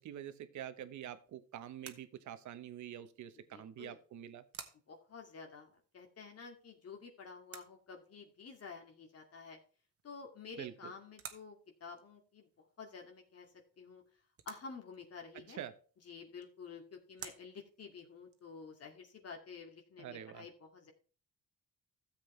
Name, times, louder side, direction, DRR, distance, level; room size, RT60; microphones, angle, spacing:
voice 1, 0.0-4.4 10.6-10.9 15.3-15.7 20.0-20.5, right 10 dB, 70° right, 11 dB, 1.1 m, -46 dB
sound 1, 0.7-19.0, right 7 dB, 50° right, 1.4 m, -58 dB
voice 2, 3.5-4.0 4.9-9.6 10.0-12.5 12.8-13.5 13.8-14.0 14.5-15.6 16.1-20.9, left 5 dB, 55° left, 2 dB, 2.3 m, -50 dB
13.0 x 7.8 x 3.3 m, 0.39 s
cardioid pair, 90°, 30 cm